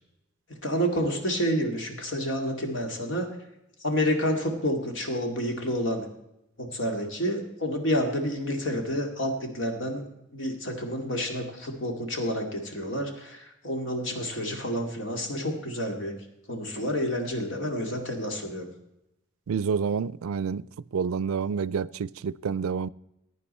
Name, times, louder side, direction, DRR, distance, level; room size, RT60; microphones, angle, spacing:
voice 1, 0.6-3.4 3.8-6.1 6.6-10.1 10.3-16.1 16.5-18.7, equal, 65° left, 2.3 m, -29 dB
voice 2, 19.5-20.6 20.9-22.9, right 6 dB, 85° right, 0.4 m, -28 dB
15.5 x 9.6 x 4.3 m
head